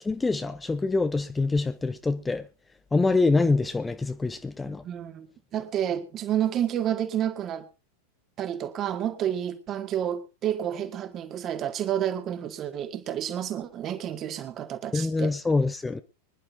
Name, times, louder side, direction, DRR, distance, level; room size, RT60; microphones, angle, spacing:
voice 1, 0.0-2.5 2.9-4.8 14.9-16.0, left 3 dB, 10° left, 0.6 m, -25 dB
voice 2, 4.6-5.3 5.5-7.6 8.4-15.3, right 10 dB, 30° right, 1.8 m, -30 dB
24.5 x 11.0 x 2.7 m
figure-of-eight pair, 90°, 0 cm